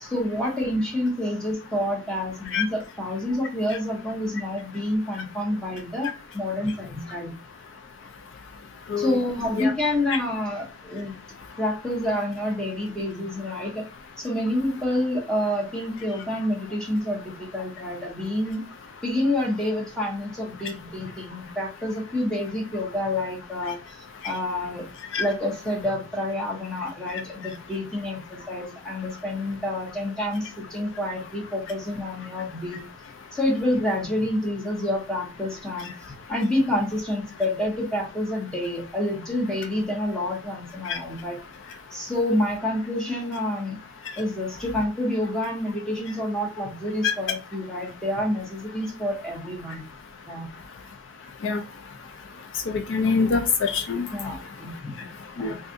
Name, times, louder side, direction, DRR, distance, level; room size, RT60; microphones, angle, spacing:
voice 1, 0.0-7.3 9.0-11.1 11.6-13.9 14.2-18.6 19.0-24.8 25.2-32.8 33.3-35.9 36.3-41.4 41.9-43.8 44.2-49.8 50.3-50.5 54.1-55.6, left 1 dB, 5° left, -3 dB, 1.0 m, -28 dB
voice 2, 52.7-54.1 55.4-55.5, left 5 dB, 60° left, 6 dB, 0.4 m, -24 dB
2.6 x 2.4 x 3.7 m, 0.33 s
head